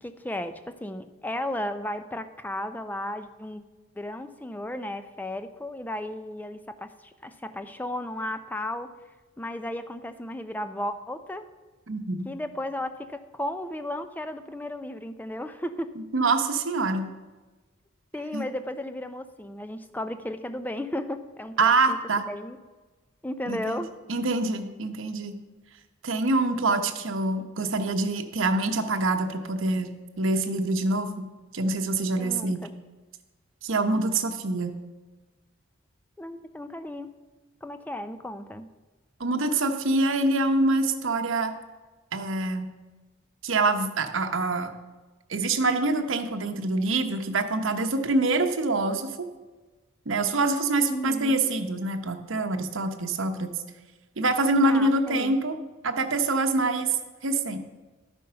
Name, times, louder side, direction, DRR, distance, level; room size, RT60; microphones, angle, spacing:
voice 1, 0.0-3.6 4.0-8.9 9.4-11.4 12.2-15.9 18.1-22.0 22.2-22.6 23.2-23.9 32.2-32.7 36.2-37.1 37.6-38.7 50.9-51.5 54.6-55.4, left 1 dB, 10° left, 10 dB, 0.4 m, -34 dB
voice 2, 11.9-12.3 16.1-17.0 18.3-18.5 21.6-22.2 23.5-23.8 24.1-25.4 26.0-31.2 31.5-32.7 33.6-34.8 39.2-41.5 42.1-42.7 43.4-44.7 45.3-49.1 50.1-53.6 54.2-55.6 55.8-57.0 57.2-57.6, right 2 dB, 75° right, 6 dB, 0.9 m, -25 dB
12.5 x 5.4 x 5.6 m, 1.3 s
head